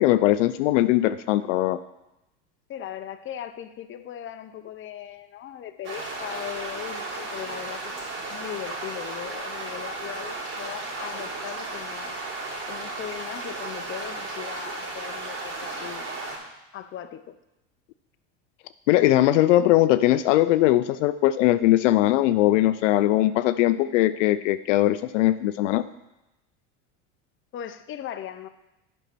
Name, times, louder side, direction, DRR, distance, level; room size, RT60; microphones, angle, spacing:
voice 1, 0.0-1.8 18.9-25.8, left 15 dB, 80° left, 12 dB, 0.5 m, -20 dB
voice 2, 2.7-12.1 12.7-16.1 16.7-17.4 27.5-28.5, left 11 dB, 35° left, 9 dB, 0.7 m, -38 dB
sound 1, 5.8-16.4, right 2 dB, 70° right, 3.8 m, -34 dB
9.0 x 5.4 x 6.1 m, 0.93 s
supercardioid pair, 100°, 37 cm